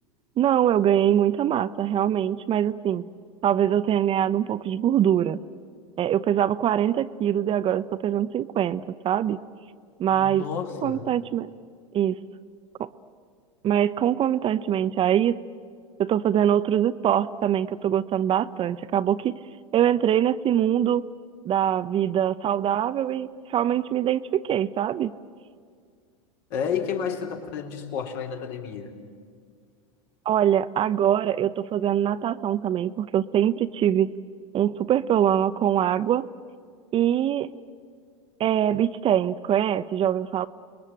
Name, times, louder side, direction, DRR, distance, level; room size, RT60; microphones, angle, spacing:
voice 1, 0.4-3.0 3.4-5.4 6.0-9.4 10.0-10.4 10.8-11.5 11.9-12.2 12.8-12.9 13.6-15.4 16.0-19.4 19.7-21.0 21.4-25.1 30.3-34.1 34.5-36.3 36.9-37.5 38.4-40.5, right 10 dB, 30° right, 13 dB, 0.7 m, -23 dB
voice 2, 10.1-11.1 26.5-28.9, left 7 dB, 60° left, 2 dB, 4.1 m, -31 dB
30.0 x 20.5 x 8.9 m, 2.1 s
hypercardioid pair, 110°, 17 cm